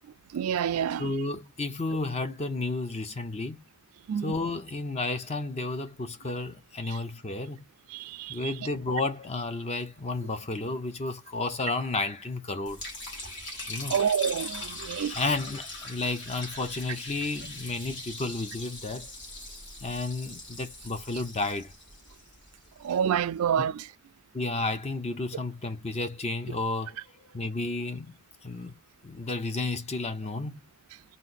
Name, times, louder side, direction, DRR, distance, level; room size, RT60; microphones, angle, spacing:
voice 1, 0.3-1.1 4.1-4.3 7.9-8.5 13.9-15.1 22.8-23.8, right 8 dB, 90° right, 0.4 m, -28 dB
voice 2, 1.0-3.6 4.2-7.6 8.3-12.8 13.7-13.9 15.1-19.1 19.8-21.7 24.3-27.0 27.3-28.1 28.4-28.7 29.0-30.6, left 3 dB, 30° left, 0.6 m, -32 dB
Liquid, 12.7-22.9, left 1 dB, 60° left, 2.0 m, -41 dB
4.1 x 2.5 x 4.0 m
head